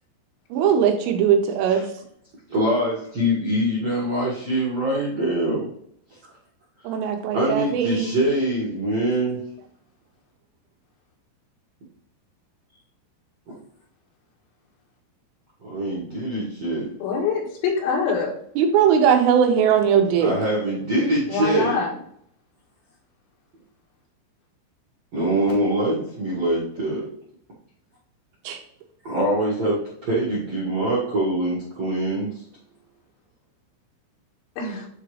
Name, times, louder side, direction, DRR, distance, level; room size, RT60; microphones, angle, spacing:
voice 1, 0.5-1.8 6.8-8.2 18.6-20.3 28.4-28.6, right 8 dB, 80° right, 3 dB, 3.3 m, -19 dB
voice 2, 2.5-5.7 7.3-9.4 13.5-13.6 15.6-16.9 20.2-21.8 25.1-27.1 29.0-32.4, right 1 dB, 65° right, -7 dB, 1.6 m, -24 dB
voice 3, 17.0-18.3 21.3-21.9 34.6-34.9, left 4 dB, 85° left, -1 dB, 4.5 m, -24 dB
9.9 x 3.7 x 3.3 m, 0.66 s
omnidirectional pair, 6.0 m